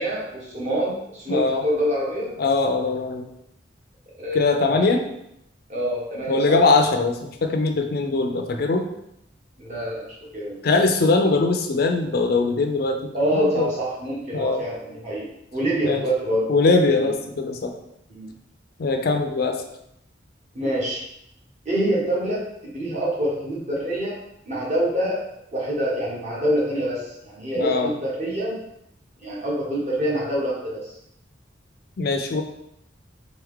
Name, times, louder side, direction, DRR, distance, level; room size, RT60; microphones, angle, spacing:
voice 1, 0.0-2.3 4.2-5.0 5.7-6.6 9.6-10.6 13.1-15.3 15.5-16.5 17.0-17.1 18.1-18.3 20.5-21.0 21.6-24.2 24.5-28.6 29.2-30.9, equal, 40° right, -5 dB, 1.4 m, -26 dB
voice 2, 1.3-1.6 2.4-3.3 4.3-5.0 6.3-8.9 10.6-13.7 14.3-14.6 15.8-16.1 16.5-17.7 18.8-19.6 27.6-27.9 32.0-32.4, left 3 dB, 55° left, 5 dB, 0.4 m, -21 dB
3.7 x 3.4 x 3.6 m, 0.80 s
head